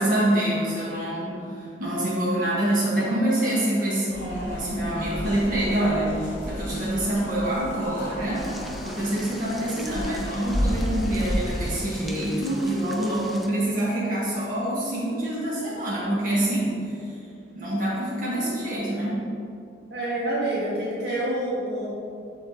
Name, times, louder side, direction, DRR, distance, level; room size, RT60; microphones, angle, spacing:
voice 1, 0.0-8.4 8.8-16.9 17.5-19.2, right 1 dB, 45° right, -7 dB, 1.7 m, -26 dB
sound 1, 4.1-11.7, equal, 40° left, 1.3 m, -32 dB
sound 2, 8.3-13.5, equal, ahead, 0.4 m, -41 dB
voice 2, 19.9-21.9, right 1 dB, 65° right, -6 dB, 1.7 m, -27 dB
11.0 x 3.9 x 3.7 m, 2.4 s
head